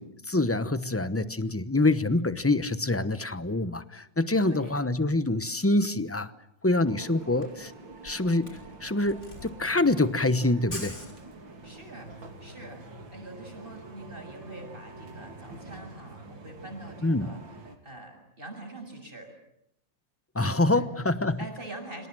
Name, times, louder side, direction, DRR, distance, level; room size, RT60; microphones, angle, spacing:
voice 1, 0.0-6.3 6.6-7.7 8.0-11.0 17.0-17.4 20.3-21.4, left 2 dB, 15° left, 13 dB, 0.5 m, -26 dB
voice 2, 4.4-4.8 11.6-12.1 12.4-12.8 13.1-17.4 17.8-19.3 20.5-21.1 21.4-22.1, right 1 dB, 25° right, 4 dB, 7.2 m, -44 dB
sound 1, 6.8-17.8, right 3 dB, 75° right, 3.7 m, -46 dB
Camera, 7.2-11.8, left 1 dB, 35° left, 5.8 m, -45 dB
29.0 x 26.0 x 7.6 m, 0.77 s
omnidirectional pair, 2.1 m